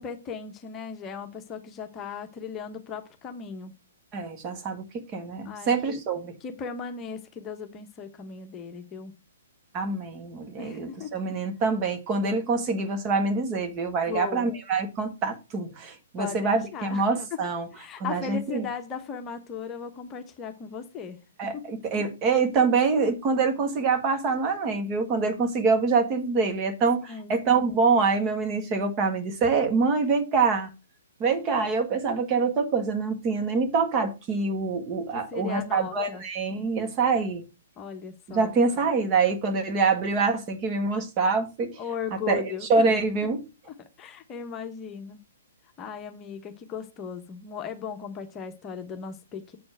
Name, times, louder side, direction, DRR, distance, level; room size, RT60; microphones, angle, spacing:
voice 1, 0.0-3.7 5.4-6.0 6.4-9.1 10.6-11.1 14.1-14.5 16.2-17.0 17.3-17.4 17.7-21.2 21.5-21.6 27.1-27.4 35.1-36.2 37.8-38.5 41.8-42.9 43.6-45.2 45.8-49.6, left 6 dB, 20° left, 1.1 m, -37 dB
voice 2, 4.1-6.3 9.7-17.7 18.0-18.7 21.4-30.7 31.2-37.4 38.3-41.8 42.3-42.4 42.7-43.4, right 4 dB, 30° right, 1.7 m, -25 dB
7.7 x 4.3 x 6.5 m
figure-of-eight pair, 120°, 0 cm